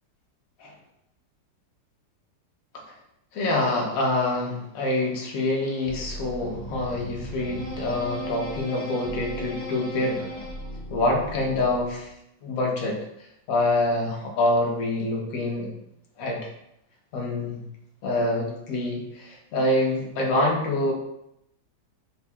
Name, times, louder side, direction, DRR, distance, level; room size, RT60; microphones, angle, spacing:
voice 1, 3.3-10.2 10.9-12.1 12.4-13.0 13.5-15.7 16.2-16.5 17.1-17.6 18.0-20.9, left 2 dB, 60° left, -1 dB, 1.2 m, -26 dB
sound 1, 5.9-12.1, equal, 15° left, 0.7 m, -36 dB
4.4 x 4.0 x 2.3 m, 0.81 s
omnidirectional pair, 1.9 m